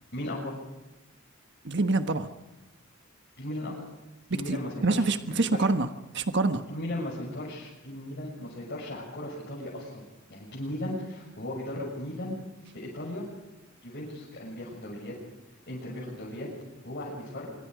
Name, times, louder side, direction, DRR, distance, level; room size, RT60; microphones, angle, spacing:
voice 1, 0.1-0.6 3.4-3.8 4.3-5.1 5.5-5.6 6.7-10.0 10.3-12.4 12.7-13.2 13.8-15.2 15.7-16.5 16.8-17.6, left 1 dB, 50° left, -6 dB, 7.2 m, -36 dB
voice 2, 1.6-2.3 4.5-5.9 6.1-6.6, right 3 dB, 60° right, 8 dB, 1.3 m, -26 dB
25.0 x 24.5 x 5.1 m, 1.0 s
head